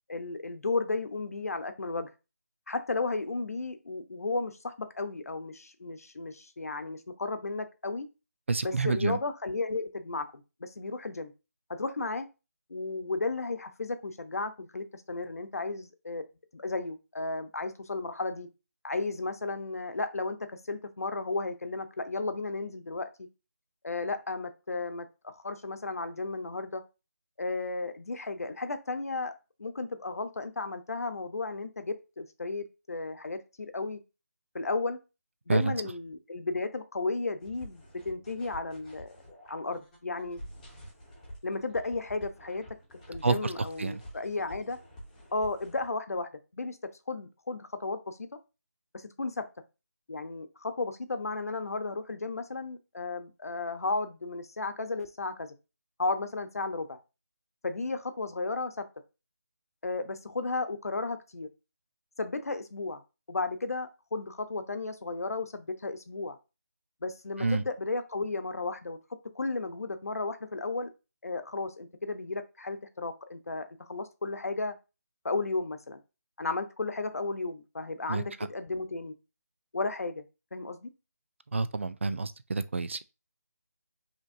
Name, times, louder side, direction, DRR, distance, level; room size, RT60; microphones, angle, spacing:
voice 1, 0.1-2.1 2.7-8.1 8.6-11.3 11.7-12.3 12.7-16.3 16.5-18.5 18.8-23.3 23.8-26.8 27.4-29.3 29.6-34.0 34.5-35.0 35.5-39.2 39.5-40.4 41.4-42.7 43.1-44.8 45.3-46.8 47.1-48.2 48.9-49.5 50.1-55.5 56.0-57.0 57.6-58.9 59.8-61.5 62.2-63.0 63.3-66.4 67.0-69.0 69.3-70.9 71.2-74.8 75.2-76.0 76.4-79.1 79.7-80.2 80.5-80.9, left 3 dB, 65° left, 0.8 m, -34 dB
voice 2, 8.5-9.2 35.5-35.7 43.2-43.5 43.8-44.0 67.4-67.6 78.1-78.2 81.5-83.0, right 4 dB, 50° right, 0.4 m, -28 dB
sound 1, 37.4-45.9, equal, 5° left, 0.9 m, -49 dB
5.2 x 3.0 x 2.6 m
figure-of-eight pair, 170°, 9 cm